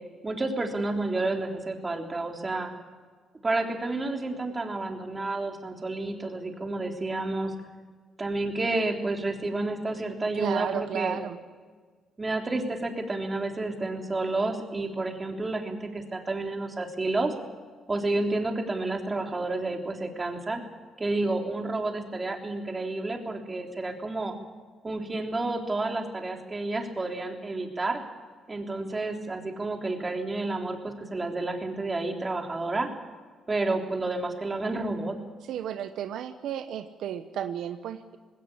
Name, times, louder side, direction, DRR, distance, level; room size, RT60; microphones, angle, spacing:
voice 1, 0.2-2.7 3.4-7.5 8.2-11.2 12.2-17.3 17.9-20.6 21.0-24.3 24.8-28.0 28.5-32.9 33.5-35.2, right 2 dB, 25° right, 3 dB, 3.5 m, -30 dB
voice 2, 10.4-11.4 35.5-38.2, right 9 dB, 80° right, 10 dB, 1.0 m, -33 dB
19.5 x 17.5 x 8.6 m, 1.5 s
cardioid pair, 90°, 0 cm